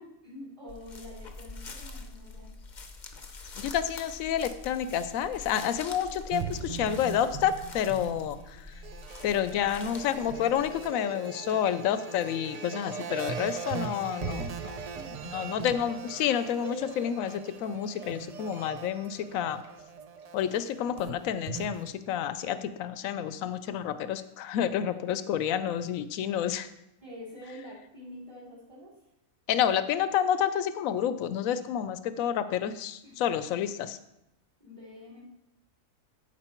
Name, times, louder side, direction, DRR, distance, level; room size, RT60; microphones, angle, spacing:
voice 1, 0.2-2.5 14.9-15.8 27.0-28.9 33.0-33.2 34.6-35.3, left 1 dB, 25° right, -6 dB, 3.2 m, -46 dB
sound 1, 0.7-10.9, left 3 dB, 40° left, 0.8 m, -45 dB
voice 2, 3.6-8.6 9.2-14.8 15.3-19.6 20.3-26.7 29.5-34.0, left 9 dB, 75° left, 12 dB, 1.0 m, -29 dB
sound 2, 6.3-21.9, right 6 dB, 55° right, 0.4 m, -40 dB
13.5 x 4.8 x 4.4 m, 0.85 s
omnidirectional pair, 1.5 m